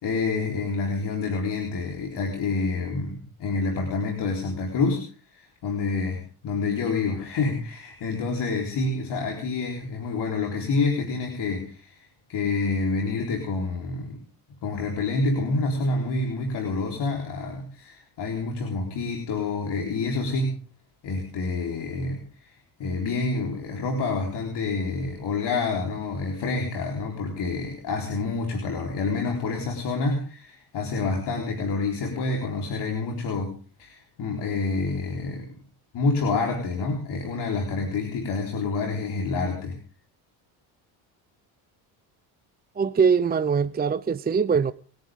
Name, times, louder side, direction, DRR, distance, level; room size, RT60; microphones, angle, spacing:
voice 1, 0.0-5.0 5.3-14.2 14.6-20.5 21.0-22.5 22.8-35.5 35.9-39.8, left 3 dB, 60° left, 4.0 m, -28 dB
voice 2, 42.8-44.7, right 6 dB, 20° right, 0.7 m, -22 dB
28.0 x 10.5 x 3.7 m
supercardioid pair, 90°, 46 cm